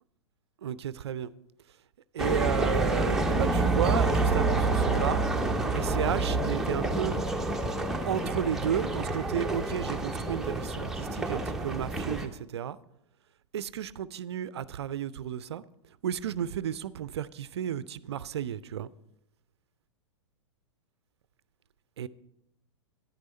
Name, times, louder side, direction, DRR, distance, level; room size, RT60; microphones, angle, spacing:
voice 1, 0.6-1.3 2.1-5.2 5.7-7.2 8.0-12.8 13.5-15.6 16.0-18.9 22.0-22.1, right 9 dB, 60° right, 0.4 m, -33 dB
sound 1, 2.2-12.3, right 2 dB, 5° right, 0.6 m, -28 dB
10.5 x 9.5 x 4.3 m
figure-of-eight pair, 105°, 16 cm